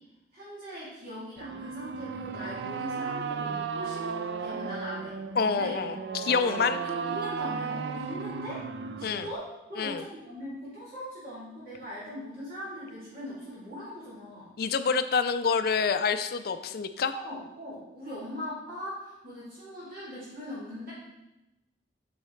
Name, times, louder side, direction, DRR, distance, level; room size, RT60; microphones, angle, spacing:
voice 1, 0.3-5.2 5.4-5.8 6.4-8.7 9.0-14.5 17.1-20.9, equal, 50° right, -10 dB, 2.6 m, -40 dB
sound 1, 1.4-9.4, right 5 dB, 65° right, 0.4 m, -35 dB
voice 2, 5.4-6.8 9.0-9.3 9.8-10.0 14.6-17.1, left 5 dB, 50° left, 10 dB, 0.4 m, -27 dB
8.1 x 5.6 x 3.2 m, 0.96 s
head